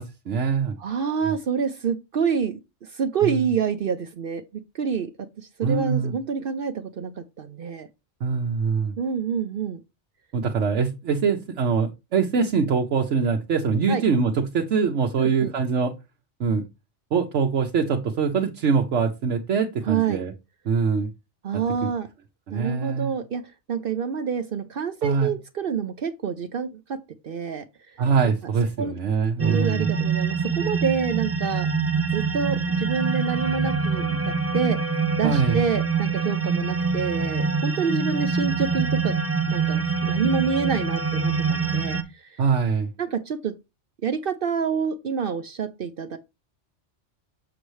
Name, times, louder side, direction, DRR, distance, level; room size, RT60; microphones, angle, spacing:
voice 1, 0.0-0.8 3.2-3.4 5.6-6.1 8.2-8.9 10.3-15.9 16.4-16.7 17.1-20.3 20.6-21.1 22.5-23.1 25.0-25.3 28.0-29.9 35.2-35.6 42.4-42.9, right 5 dB, 75° right, 1.2 m, -23 dB
voice 2, 0.8-4.4 4.7-5.1 5.4-7.9 9.0-9.8 13.9-14.0 15.2-15.5 19.9-20.2 21.4-22.1 22.5-23.4 23.7-27.0 27.2-27.6 28.8-28.9 29.4-31.7 32.1-34.8 35.2-39.1 39.5-42.4 43.0-43.5 44.0-46.2, right 6 dB, 55° right, 0.8 m, -27 dB
sound 1, 29.4-42.0, right 5 dB, 15° right, 0.5 m, -25 dB
7.1 x 6.6 x 3.2 m
omnidirectional pair, 1.2 m